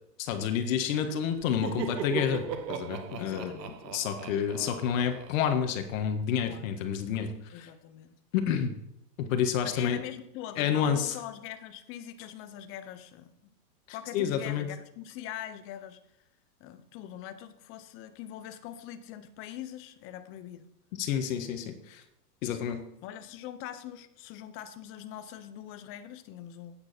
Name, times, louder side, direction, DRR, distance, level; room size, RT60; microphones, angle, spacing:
voice 1, 0.2-3.5 3.9-7.7 8.3-8.7 9.2-10.0 10.6-11.2 14.1-14.7 21.0-22.0 22.4-22.8, left 8 dB, 55° left, 6 dB, 1.7 m, -29 dB
Laughter, 1.4-6.1, right 7 dB, 80° right, 1.3 m, -38 dB
voice 2, 3.2-3.8 6.4-6.7 7.5-8.2 9.6-13.5 13.9-16.0 16.6-20.7 22.5-22.8 23.0-26.7, left 11 dB, 25° left, 10 dB, 0.8 m, -43 dB
9.6 x 9.1 x 4.3 m, 0.80 s
hypercardioid pair, 145°, 49 cm